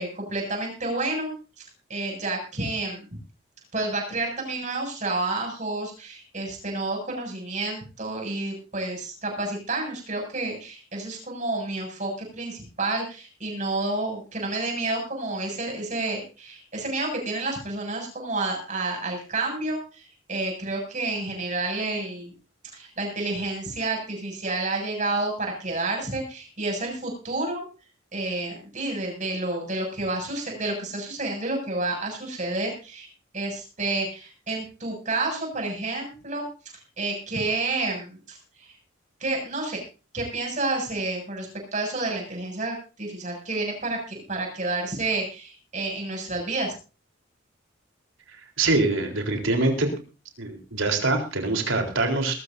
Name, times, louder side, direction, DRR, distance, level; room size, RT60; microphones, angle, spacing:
voice 1, 0.0-1.3 1.9-3.1 3.7-22.3 22.7-27.6 28.1-33.1 33.3-36.5 37.0-38.7 39.2-39.8 40.1-46.7, right 2 dB, 40° right, 1 dB, 7.5 m, -30 dB
voice 2, 48.3-49.9 50.4-52.3, right 2 dB, 85° right, 3 dB, 4.0 m, -24 dB
21.5 x 13.5 x 2.7 m, 0.33 s
head